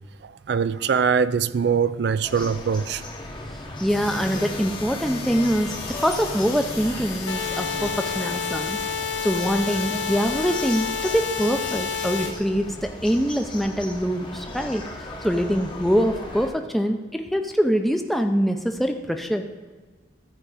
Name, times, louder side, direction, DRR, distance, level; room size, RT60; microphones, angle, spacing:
voice 1, 0.2-3.0, right 6 dB, 60° right, 0.3 m, -23 dB
sound 1, 2.2-16.5, left 1 dB, 25° left, 0.9 m, -36 dB
voice 2, 3.8-5.7 6.0-8.8 9.2-14.8 15.2-19.4, equal, ahead, 0.5 m, -24 dB
sound 2, 3.9-12.3, left 5 dB, 50° left, 2.1 m, -38 dB
sound 3, 7.3-12.3, left 6 dB, 70° left, 0.8 m, -29 dB
14.0 x 4.9 x 4.9 m
head